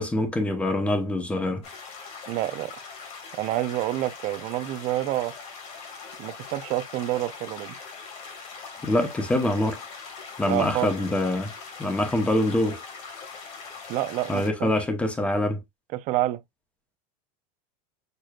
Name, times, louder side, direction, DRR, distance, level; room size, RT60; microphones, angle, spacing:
voice 1, 0.0-1.6 8.8-9.8 10.4-11.5 11.8-12.9 14.3-15.6, left 1 dB, 5° left, 0.9 m, -25 dB
sound 1, 1.6-14.5, left 5 dB, 35° left, 1.7 m, -41 dB
voice 2, 2.3-2.7 3.3-5.3 6.2-7.7 10.5-10.9 13.9-14.8 15.9-16.4, right 15 dB, 40° right, 0.5 m, -28 dB
6.7 x 3.0 x 2.3 m
supercardioid pair, 165°, 19 cm